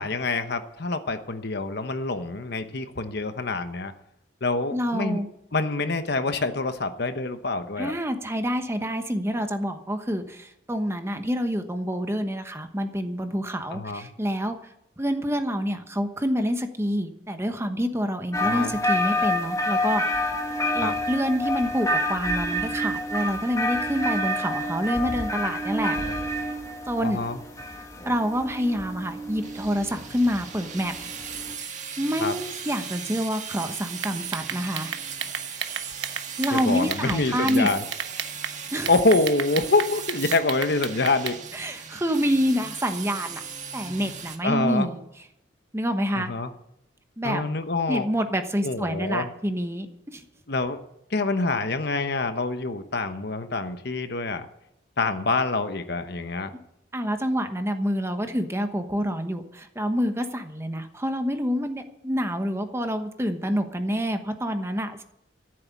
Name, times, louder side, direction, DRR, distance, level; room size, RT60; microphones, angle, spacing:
voice 1, 0.0-3.9 4.4-5.2 5.5-7.9 13.7-14.1 18.4-18.8 20.8-20.9 27.0-27.4 32.2-32.3 36.5-37.8 38.9-41.4 44.4-44.9 46.1-46.5 47.2-48.1 48.6-49.3 50.5-50.8 51.1-54.5 55.0-56.5, left 3 dB, 60° left, 9 dB, 1.0 m, -26 dB
voice 2, 4.7-5.3 7.8-14.6 15.0-20.3 20.7-26.0 26.3-26.5 26.9-27.2 28.1-30.9 32.0-34.9 36.4-37.7 38.7-38.9 41.5-43.4 43.7-45.0 45.7-46.3 47.2-47.4 47.9-50.2 56.9-65.0, equal, 15° right, 7 dB, 1.1 m, -27 dB
sound 1, 18.3-31.5, left 1 dB, 15° left, 1.5 m, -28 dB
sound 2, 29.4-44.4, right 7 dB, 40° right, 1.7 m, -38 dB
sound 3, 34.0-37.2 37.5-38.5 38.9-41.4, right 8 dB, 90° right, 1.1 m, -32 dB
14.0 x 7.8 x 8.3 m, 0.82 s
head